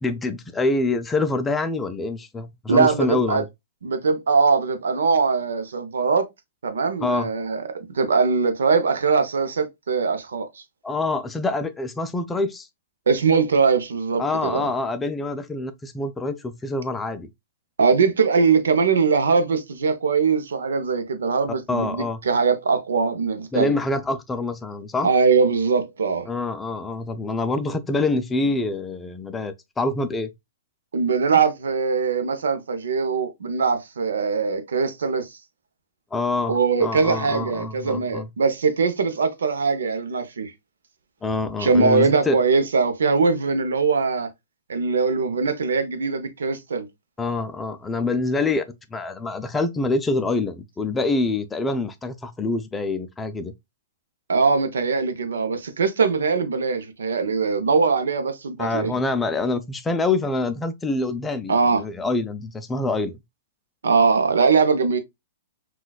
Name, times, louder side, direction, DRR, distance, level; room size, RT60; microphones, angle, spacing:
voice 1, 0.0-3.5 7.0-7.3 10.8-12.7 14.2-17.3 21.7-22.2 23.5-25.1 26.3-30.3 36.1-38.3 41.2-42.4 47.2-48.6 48.9-53.5 58.6-63.2, left 3 dB, 10° left, 0.3 m, -26 dB
voice 2, 2.7-3.4 3.8-6.3 6.6-7.6 7.9-10.6 13.1-14.7 17.8-23.8 25.0-26.3 30.9-35.4 36.5-40.5 41.6-44.3 44.7-46.9 54.3-58.9 61.5-61.8 63.8-65.0, right 5 dB, 85° right, 0.6 m, -21 dB
3.9 x 2.2 x 2.3 m
hypercardioid pair, 135°, 0 cm